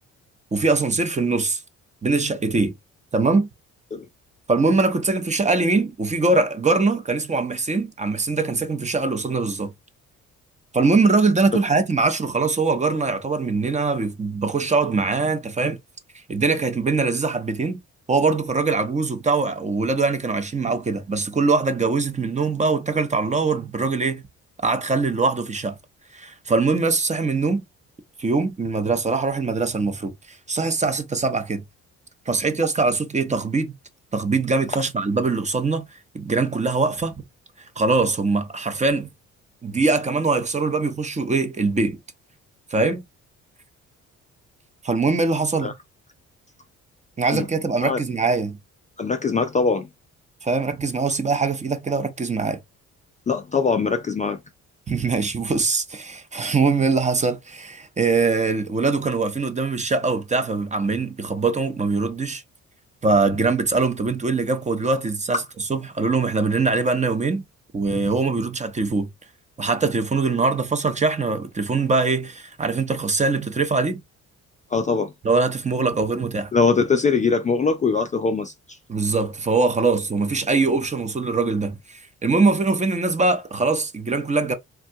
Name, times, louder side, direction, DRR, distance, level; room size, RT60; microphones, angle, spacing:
voice 1, 0.5-1.6 2.0-2.7 3.1-3.5 4.5-9.7 10.7-15.8 16.3-17.8 18.1-24.2 24.6-25.7 26.1-27.6 28.2-31.6 32.3-33.7 34.1-35.8 36.1-37.1 37.8-39.1 39.6-42.0 42.7-43.0 44.8-45.7 47.2-48.6 50.4-52.6 54.9-62.4 63.0-65.4 65.7-67.4 67.7-69.1 69.6-74.0 75.2-76.5 78.9-84.5, right 3 dB, 25° right, 0.6 m, -22 dB
voice 2, 49.0-49.9 53.3-54.4 74.7-75.1 76.5-78.5, left 4 dB, 25° left, 0.3 m, -21 dB
3.5 x 2.2 x 2.6 m
cardioid pair, 90°, 30 cm